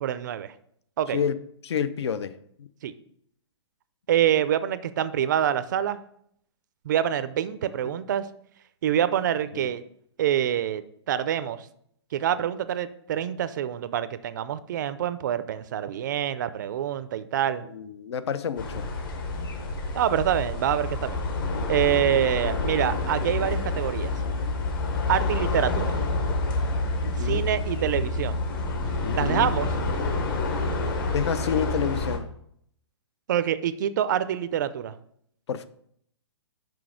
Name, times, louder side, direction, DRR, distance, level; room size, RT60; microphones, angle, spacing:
voice 1, 0.0-0.5 1.0-1.2 2.8-2.9 4.1-6.0 6.8-8.3 8.8-9.8 10.2-11.7 12.1-17.7 19.9-21.2 21.7-24.1 25.1-26.0 27.2-28.4 29.1-29.7 33.3-34.9, right 10 dB, 40° right, 14 dB, 0.4 m, -26 dB
voice 2, 1.6-2.7 7.8-7.9 9.5-9.7 17.7-18.8 27.0-27.5 29.0-29.5 31.1-32.3 35.5-35.7, left 7 dB, 65° left, 14 dB, 0.6 m, -29 dB
sound 1, 18.6-32.2, left 2 dB, 50° left, 1.2 m, -28 dB
6.0 x 5.1 x 4.9 m, 0.68 s
hypercardioid pair, 155°, 15 cm